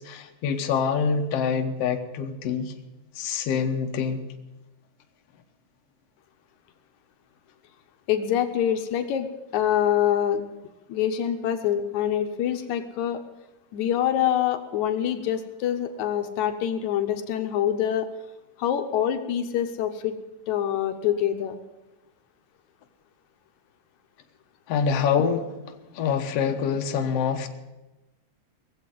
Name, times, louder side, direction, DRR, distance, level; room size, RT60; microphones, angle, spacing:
voice 1, 0.0-2.7 3.2-4.3 24.7-25.6 25.9-27.5, left 6 dB, 60° left, 4 dB, 2.1 m, -25 dB
voice 2, 8.1-9.3 9.5-10.4 10.9-13.2 13.7-18.1 18.6-20.1 20.5-21.6, left 10 dB, 80° left, 7 dB, 2.3 m, -25 dB
19.0 x 7.8 x 9.2 m, 1.0 s
omnidirectional pair, 3.3 m